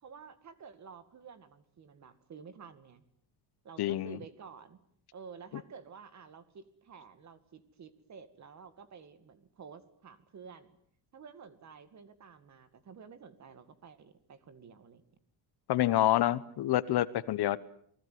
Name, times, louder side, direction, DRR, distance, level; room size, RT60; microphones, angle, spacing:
voice 1, 0.0-3.0 3.6-4.8 5.1-10.8 11.1-15.0, right 6 dB, 35° right, 13 dB, 2.2 m, -51 dB
voice 2, 3.8-4.2 15.7-17.6, left 14 dB, 55° left, 16 dB, 1.1 m, -27 dB
29.5 x 19.5 x 9.4 m, 0.64 s
cardioid pair, 180°, 46 cm